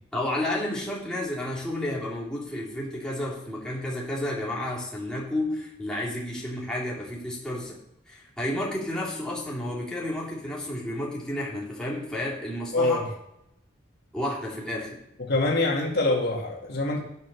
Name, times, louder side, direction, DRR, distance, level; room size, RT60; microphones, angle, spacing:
voice 1, 0.1-7.8 8.1-13.0 14.1-15.0, left 1 dB, 5° left, -6 dB, 3.1 m, -31 dB
voice 2, 12.7-13.1 15.2-17.0, left 2 dB, 60° left, 0 dB, 2.0 m, -25 dB
10.5 x 6.2 x 6.3 m, 0.81 s
head